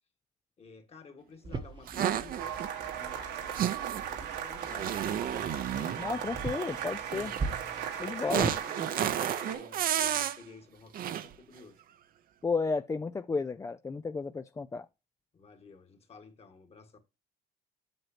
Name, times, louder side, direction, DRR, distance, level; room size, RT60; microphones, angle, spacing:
voice 1, 0.6-2.6 2.9-5.3 8.2-11.8 15.3-17.0, left 4 dB, 35° left, 1.7 m, -52 dB
sound 1, 1.4-8.6, right 3 dB, 25° right, 0.9 m, -41 dB
sound 2, 1.9-2.7 3.5-4.1 4.6-6.1 7.1-7.4 8.3-10.4 10.9-11.3, right 10 dB, 60° right, 0.7 m, -32 dB
sound 3, 2.4-9.5, right 9 dB, 85° right, 1.6 m, -37 dB
voice 2, 6.0-7.3 8.0-8.5 12.4-14.9, left 4 dB, 20° left, 0.3 m, -32 dB
7.9 x 7.6 x 2.9 m
cardioid pair, 110°, 17 cm